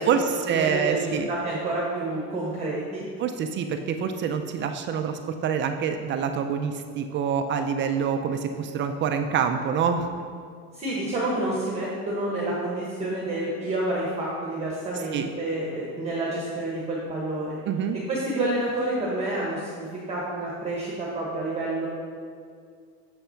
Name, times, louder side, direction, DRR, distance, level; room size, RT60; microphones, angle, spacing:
voice 1, 0.0-1.3 3.2-10.1 15.1-15.3 17.7-18.0, right 7 dB, 35° right, 7 dB, 0.4 m, -26 dB
voice 2, 0.5-3.0 10.7-17.6 17.9-21.9, right 2 dB, 20° right, -5 dB, 1.2 m, -29 dB
7.1 x 5.6 x 5.6 m, 2.2 s
cardioid pair, 155°, 34 cm